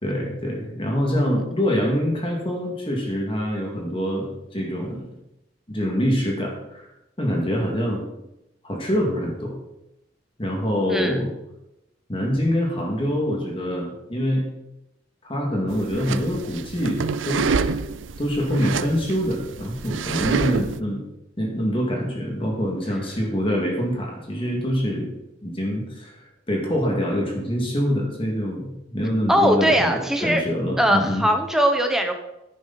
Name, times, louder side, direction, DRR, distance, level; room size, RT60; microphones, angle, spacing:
voice 1, 0.0-5.1 5.7-6.8 7.2-8.0 8.6-9.6 10.4-11.3 12.1-14.4 15.2-17.5 18.2-21.0 21.4-25.1 25.4-31.3, equal, 30° left, 0 dB, 2.4 m, -25 dB
voice 2, 10.9-11.2 29.3-30.4 30.8-32.1, equal, ahead, 4 dB, 1.2 m, -20 dB
sound 1, 15.7-20.8, right 5 dB, 90° right, 0.6 m, -27 dB
10.0 x 10.0 x 4.2 m, 0.91 s
head